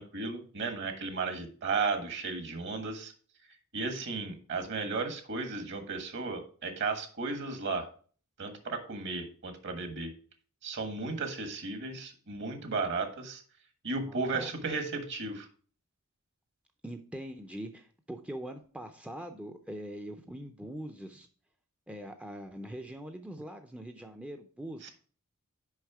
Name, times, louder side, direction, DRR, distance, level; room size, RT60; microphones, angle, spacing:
voice 1, 0.0-3.1 3.7-7.9 8.4-10.1 10.6-13.4 13.8-15.5 24.8-24.9, right 4 dB, 55° right, 7 dB, 1.4 m, -34 dB
voice 2, 14.1-14.5 16.8-21.3 21.9-24.9, right 1 dB, 5° right, 5 dB, 0.5 m, -42 dB
6.3 x 5.3 x 4.8 m, 0.41 s
head